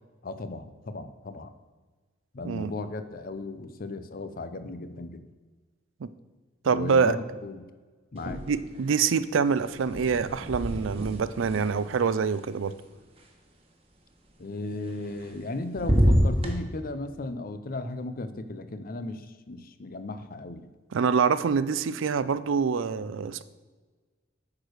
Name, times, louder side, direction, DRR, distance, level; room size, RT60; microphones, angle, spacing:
voice 1, 0.2-1.5 2.3-5.2 6.6-7.7 8.1-8.4 14.4-20.7, left 2 dB, 50° left, 11 dB, 0.6 m, -36 dB
voice 2, 6.6-7.2 8.5-12.7 20.9-23.4, right 5 dB, 90° right, 15 dB, 0.4 m, -25 dB
sound 1, 8.2-8.9 9.1-13.2 14.9-15.5 15.8-16.6, equal, 30° right, 1.3 m, -28 dB
8.6 x 4.9 x 6.4 m, 1.3 s
head